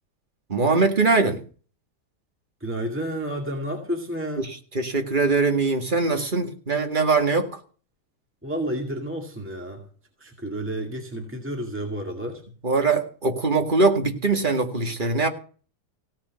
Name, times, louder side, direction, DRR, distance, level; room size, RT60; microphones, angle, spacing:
voice 1, 0.5-1.4 4.4-7.6 12.6-15.3, right 3 dB, 30° right, 2.2 m, -22 dB
voice 2, 2.6-4.5 8.4-9.9 10.2-12.4, right 1 dB, 5° right, 2.2 m, -30 dB
16.5 x 6.2 x 9.4 m
omnidirectional pair, 1.7 m